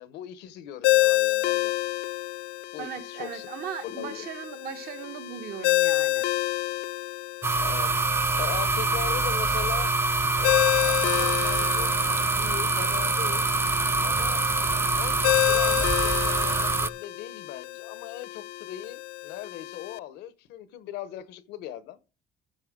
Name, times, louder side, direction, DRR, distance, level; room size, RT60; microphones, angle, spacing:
voice 1, 0.0-1.7 2.7-3.5 3.8-4.3 7.6-8.0 8.4-9.9 10.4-13.5 14.0-22.0, left 12 dB, 90° left, 0.9 m, -39 dB
Ringtone, 0.8-20.0, left 18 dB, 75° left, 0.5 m, -29 dB
voice 2, 2.8-6.2, right 8 dB, 65° right, 1.3 m, -38 dB
sound 1, 7.4-16.9, right 3 dB, 15° right, 0.4 m, -25 dB
13.5 x 5.6 x 3.6 m
cardioid pair, 110°, 17 cm